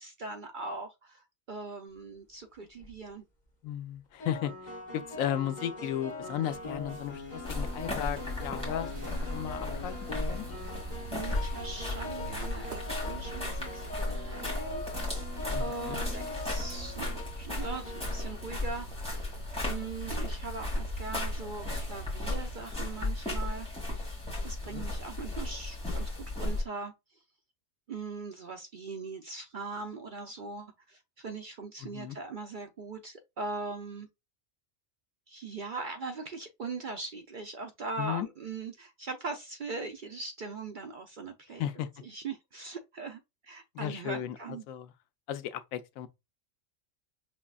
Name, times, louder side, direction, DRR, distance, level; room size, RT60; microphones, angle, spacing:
voice 1, 0.0-3.2 11.1-15.3 15.6-19.4 19.7-23.7 24.1-24.2 24.4-26.9 27.9-34.1 35.3-41.6 42.0-44.6, right 3 dB, 55° right, 0.5 m, -40 dB
sound 1, 2.6-2.9 4.2-19.0, left 2 dB, 35° left, 1.4 m, -42 dB
voice 2, 3.6-10.0 10.3-10.4 15.5-16.0 24.6-24.8 31.8-32.2 38.0-38.3 41.6-41.9 43.7-44.9 45.3-46.1, left 10 dB, 85° left, 1.0 m, -35 dB
sound 2, 6.5-22.6, right 7 dB, 40° right, 1.1 m, -48 dB
sound 3, 7.4-26.6, left 2 dB, 5° left, 1.6 m, -35 dB
5.3 x 3.1 x 2.3 m
omnidirectional pair, 1.4 m